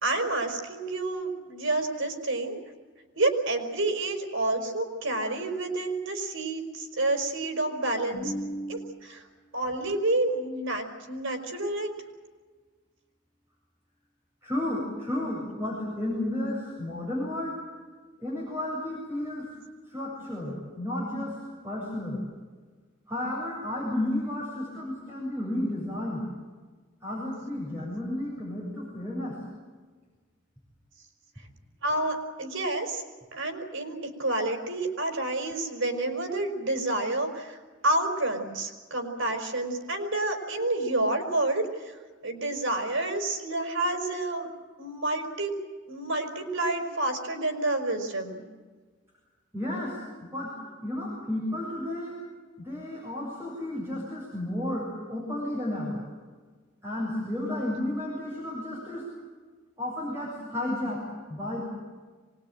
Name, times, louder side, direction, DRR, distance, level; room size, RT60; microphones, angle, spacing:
voice 1, 0.0-2.6 3.2-8.3 8.7-9.2 9.5-11.9 31.8-33.0 33.3-37.6 37.8-44.5 44.8-45.5 45.9-48.4, right 2 dB, 85° right, 4 dB, 4.8 m, -29 dB
voice 2, 8.1-9.0 14.4-17.6 18.2-19.5 19.9-21.4 21.6-22.2 23.1-26.2 27.0-29.4 34.9-35.0 49.5-50.5 50.8-52.1 52.6-56.0 56.8-59.1 59.8-61.0 61.3-61.6, left 1 dB, 15° right, -5 dB, 7.3 m, -32 dB
24.5 x 20.5 x 9.1 m, 1.4 s
head